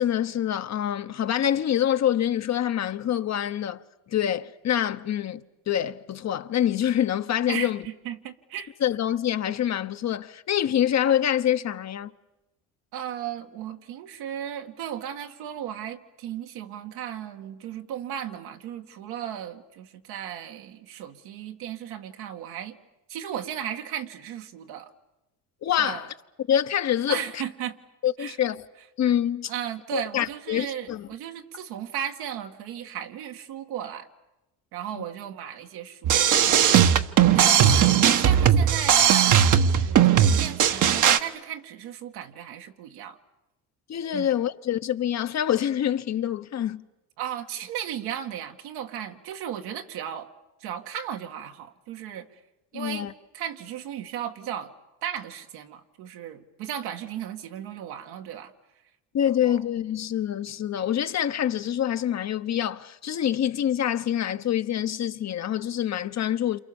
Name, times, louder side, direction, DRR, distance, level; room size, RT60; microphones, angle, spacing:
voice 1, 0.0-3.8 4.1-5.4 5.7-7.8 8.8-12.1 25.6-26.1 26.5-27.4 28.0-28.7 29.0-29.5 29.9-31.1 43.9-46.8 52.7-53.1 59.1-66.6, left 10 dB, 45° left, 1.1 m, -26 dB
voice 2, 7.5-8.7 12.9-22.8 23.1-24.9 25.8-26.1 27.1-27.8 28.2-28.4 29.5-34.1 34.7-36.9 37.3-43.2 44.1-44.3 47.2-50.3 50.6-52.3 52.7-54.7 55.0-58.5 59.4-59.6, right 10 dB, 75° right, 2.2 m, -36 dB
sound 1, 36.0-41.2, right 9 dB, 50° right, 1.4 m, -18 dB
28.0 x 28.0 x 7.2 m
supercardioid pair, 90°, 38 cm